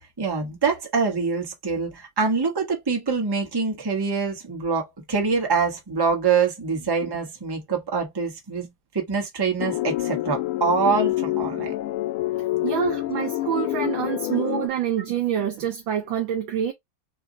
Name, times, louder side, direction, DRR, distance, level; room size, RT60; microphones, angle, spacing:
voice 1, 0.2-11.7, right 5 dB, 15° right, 1.0 m, -25 dB
sound 1, 9.6-14.7, left 16 dB, 90° left, 1.6 m, -27 dB
voice 2, 12.6-16.7, right 10 dB, 70° right, 1.4 m, -26 dB
4.5 x 2.4 x 3.9 m
omnidirectional pair, 2.4 m